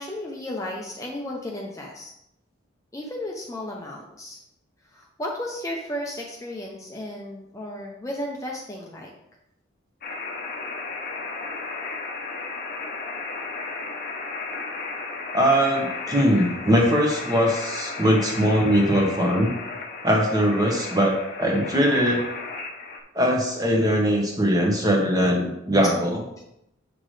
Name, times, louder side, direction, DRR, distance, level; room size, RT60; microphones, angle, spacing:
voice 1, 0.0-2.1 2.9-4.4 4.9-9.1 25.8-25.9, left 1 dB, 15° left, -1 dB, 0.7 m, -34 dB
sound 1, 10.0-23.0, left 3 dB, 45° left, 0.8 m, -34 dB
voice 2, 15.3-19.5 20.0-22.2 23.1-26.2, equal, 20° right, 1 dB, 1.1 m, -21 dB
7.7 x 5.9 x 3.3 m, 0.81 s
head